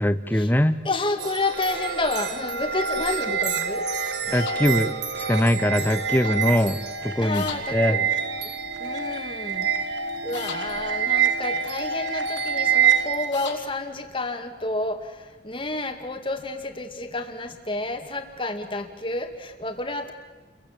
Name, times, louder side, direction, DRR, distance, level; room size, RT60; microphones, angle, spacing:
voice 1, 0.0-0.8 4.3-7.4 7.7-8.0, left 1 dB, 10° left, 12 dB, 0.8 m, -22 dB
voice 2, 0.8-3.9 6.2-6.3 7.2-8.1 8.4-8.5 8.8-9.7 10.2-20.1, left 2 dB, 30° left, 6 dB, 2.2 m, -30 dB
sound 1, 1.2-13.3, right 7 dB, 75° right, 1.8 m, -26 dB
sound 2, 4.3-4.6 7.3-7.6 10.3-10.6 13.3-13.6, left 7 dB, 90° left, 3.9 m, -35 dB
29.5 x 23.0 x 7.7 m, 1.3 s
head